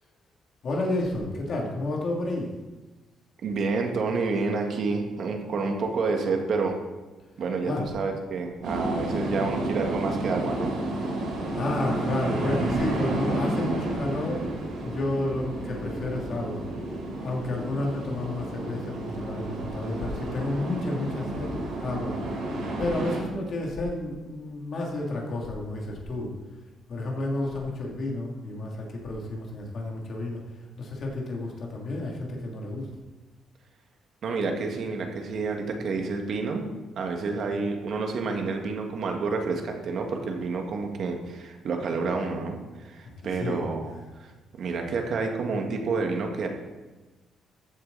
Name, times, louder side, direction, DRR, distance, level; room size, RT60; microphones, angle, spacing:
voice 1, 0.6-2.5 7.7-7.9 11.5-14.5 14.8-16.6 17.2-22.2 22.8-26.3 26.9-30.4 30.8-32.9 43.0-44.0, left 2 dB, 55° left, -1 dB, 2.7 m, -31 dB
voice 2, 3.4-6.8 7.4-10.8 34.2-36.7 37.0-46.5, right 4 dB, 65° right, 3 dB, 1.9 m, -29 dB
sound 1, 8.6-23.2, right 1 dB, 85° right, 4.1 m, -31 dB
14.0 x 7.9 x 4.1 m, 1.2 s
cardioid pair, 90°, 0 cm